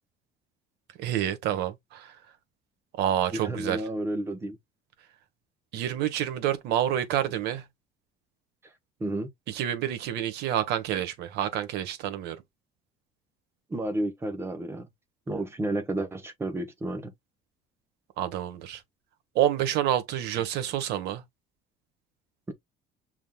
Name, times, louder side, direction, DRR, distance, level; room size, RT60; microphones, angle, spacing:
voice 1, 1.0-2.1 3.0-3.8 5.7-7.6 9.5-12.4 18.2-18.8 19.3-21.2, right 11 dB, 70° right, 1.2 m, -28 dB
voice 2, 3.4-4.6 9.0-9.3 13.7-14.9 15.3-17.1 22.5-22.6, right 1 dB, 15° right, 0.9 m, -31 dB
6.2 x 3.6 x 2.3 m
cardioid pair, 165°, 18 cm